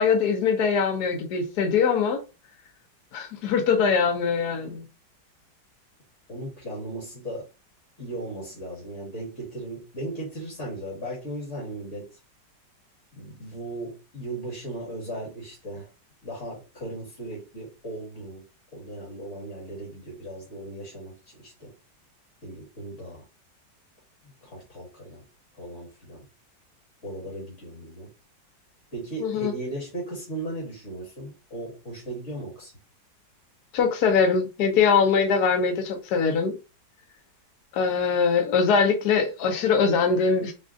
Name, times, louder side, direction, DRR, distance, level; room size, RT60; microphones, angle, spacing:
voice 1, 0.0-2.2 3.1-4.8 29.2-29.5 33.7-36.5 37.7-40.5, left 5 dB, 65° left, 1.2 m, -22 dB
voice 2, 6.3-7.5 8.0-12.2 13.1-15.9 16.2-18.4 18.7-21.7 22.4-23.3 24.2-25.2 25.5-26.3 27.0-28.1 28.9-32.7, right 1 dB, 40° left, 1.9 m, -37 dB
5.0 x 2.4 x 2.4 m
omnidirectional pair, 2.0 m